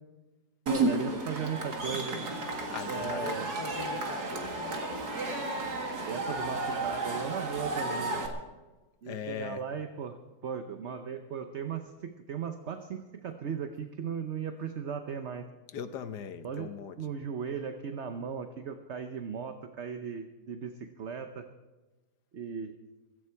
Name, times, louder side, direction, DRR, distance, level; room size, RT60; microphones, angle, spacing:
voice 1, 0.7-2.2 2.9-3.6 6.0-8.2 9.0-10.2 10.4-15.5 16.4-16.7 17.0-21.5 22.3-22.7, right 7 dB, 50° right, 7 dB, 1.0 m, -37 dB
Cheering / Crowd, 0.7-8.3, right 2 dB, 70° right, 2.4 m, -33 dB
voice 2, 2.7-4.9 9.1-9.6 15.7-17.0, left 7 dB, 80° left, 9 dB, 1.6 m, -40 dB
16.5 x 15.5 x 4.6 m, 1.2 s
omnidirectional pair, 1.8 m